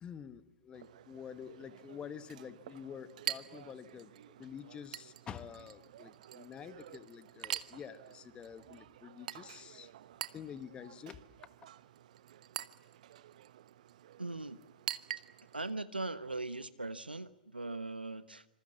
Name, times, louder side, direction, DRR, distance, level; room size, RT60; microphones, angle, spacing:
voice 1, 0.0-4.1 4.4-9.9 10.3-11.2, left 8 dB, 20° left, 13 dB, 1.4 m, -48 dB
Chink clink, 0.7-15.7, right 12 dB, 50° right, 1.0 m, -46 dB
voice 2, 14.2-14.6 15.5-18.5, right 2 dB, 85° right, 14 dB, 1.3 m, -40 dB
26.5 x 26.5 x 7.3 m, 0.97 s
figure-of-eight pair, 110°, 5 cm